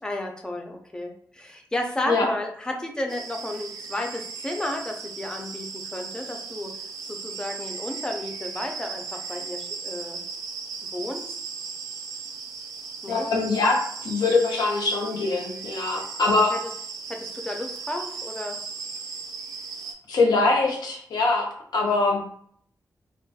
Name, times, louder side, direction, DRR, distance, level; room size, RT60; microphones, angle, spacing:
voice 1, 0.0-6.7 7.0-10.2 10.9-11.4 13.0-13.3 16.5-16.7 17.1-18.6, left 1 dB, 10° left, 3 dB, 0.3 m, -33 dB
sound 1, 3.1-19.9, right 5 dB, 65° right, 0.4 m, -37 dB
voice 2, 13.1-16.5 20.1-21.5 21.7-22.2, left 3 dB, 90° left, 0 dB, 0.6 m, -23 dB
2.2 x 2.2 x 2.6 m, 0.63 s
wide cardioid pair, 165°, 7 cm